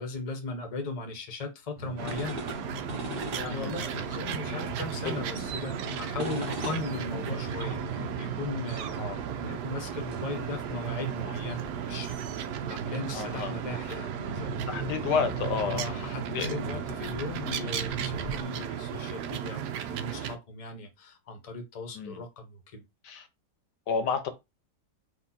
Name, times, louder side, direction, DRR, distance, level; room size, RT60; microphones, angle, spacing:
voice 1, 0.0-2.5 3.3-8.9 9.4-12.2 12.7-14.9 15.6-22.8, left 3 dB, 25° left, 0.9 m, -38 dB
sound 1, 1.8-18.4, right 2 dB, 35° right, 1.3 m, -38 dB
sound 2, 2.0-20.4, right 9 dB, 75° right, 1.2 m, -35 dB
voice 2, 3.4-3.7 5.0-5.2 9.0-9.2 13.1-13.5 14.7-16.6 21.9-22.2 23.0-23.3 23.9-24.3, left 6 dB, 75° left, 1.4 m, -31 dB
4.3 x 2.6 x 4.2 m
omnidirectional pair, 1.8 m